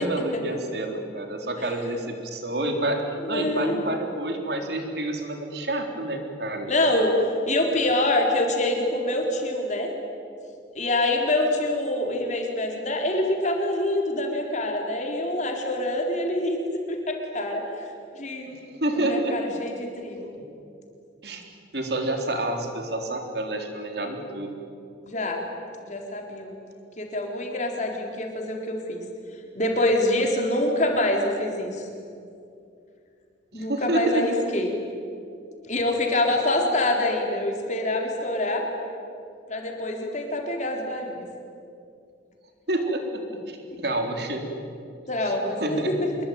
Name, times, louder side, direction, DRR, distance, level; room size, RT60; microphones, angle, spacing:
voice 1, 0.0-6.7 18.5-18.6 18.8-19.4 20.3-20.4 21.2-21.5 21.7-24.5 33.5-34.2 42.7-44.5 45.2-45.3 45.6-45.9, right 1 dB, 60° right, 3 dB, 3.7 m, -28 dB
voice 2, 3.2-3.8 6.7-9.9 10.7-17.6 18.1-18.5 19.0-20.3 25.0-25.5 25.8-26.6 27.0-29.0 29.5-31.9 33.5-34.7 35.6-38.7 39.5-41.3 45.1-45.8, left 1 dB, 40° left, 1 dB, 4.0 m, -25 dB
26.0 x 22.5 x 9.5 m, 2.5 s
head